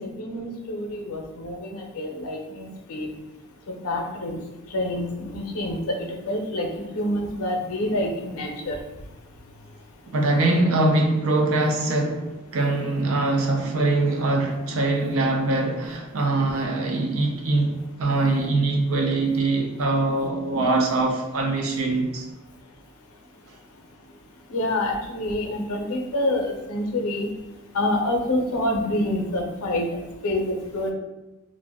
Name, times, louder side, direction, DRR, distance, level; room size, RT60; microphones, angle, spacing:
voice 1, 0.0-3.1 3.7-4.4 4.7-8.8 24.5-27.3 27.7-30.9, left 1 dB, 85° left, 0.6 m, -27 dB
voice 2, 10.1-22.3, right 2 dB, 75° right, 0.5 m, -23 dB
2.5 x 2.1 x 3.4 m
head